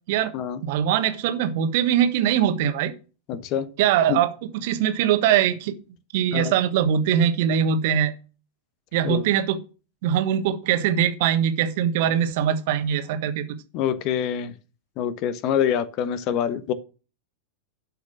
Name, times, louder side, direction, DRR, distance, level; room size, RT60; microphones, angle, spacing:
voice 1, 0.6-2.9 3.8-5.7 6.1-8.1 8.9-9.6 10.0-13.4, right 9 dB, 50° right, 1.4 m, -22 dB
voice 2, 3.3-3.7 4.1-4.2 6.3-6.5 9.0-9.2 13.7-14.5 15.0-16.7, left 9 dB, 40° left, 1.1 m, -25 dB
12.0 x 5.7 x 6.1 m
figure-of-eight pair, 90°, 0 cm